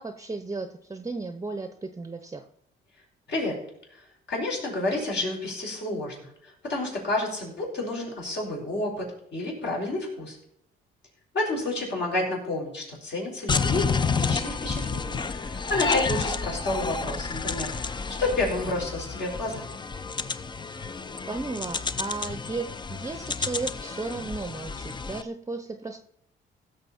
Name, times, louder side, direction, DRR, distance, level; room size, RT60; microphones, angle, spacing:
voice 1, 0.0-2.5 14.1-14.5 20.8-20.9 21.3-26.0, right 3 dB, 15° right, 9 dB, 0.8 m, -35 dB
voice 2, 4.3-10.4 11.3-13.9 14.1-19.7, left 2 dB, 60° left, -2 dB, 5.2 m, -30 dB
sound 1, 13.5-25.2, left 5 dB, 25° left, 0.5 m, -30 dB
16.5 x 6.8 x 4.3 m, 0.74 s
cardioid pair, 90°, 20 cm